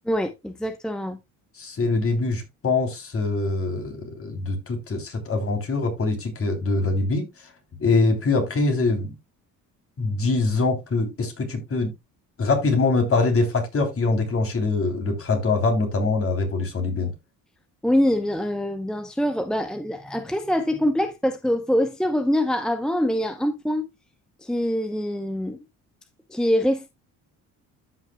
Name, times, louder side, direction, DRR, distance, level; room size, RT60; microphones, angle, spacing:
voice 1, 0.1-1.2 17.8-23.9 24.4-25.6 26.3-26.9, equal, ahead, 0.8 m, -24 dB
voice 2, 1.6-7.3 7.8-9.1 10.0-11.9 12.4-17.1, left 3 dB, 40° left, 3.4 m, -23 dB
14.0 x 5.9 x 2.3 m
cardioid pair, 95°, 34 cm